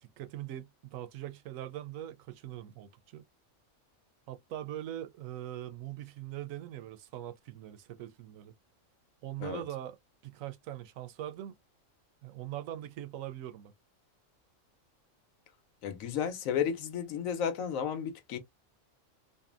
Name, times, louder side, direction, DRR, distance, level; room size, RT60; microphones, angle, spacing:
voice 1, 0.0-3.2 4.3-8.5 9.2-10.0 10.2-11.6 12.2-13.7, right 12 dB, 85° right, 1.0 m, -42 dB
voice 2, 15.8-18.4, left 8 dB, 90° left, 1.1 m, -33 dB
2.7 x 2.4 x 2.4 m
omnidirectional pair, 1.4 m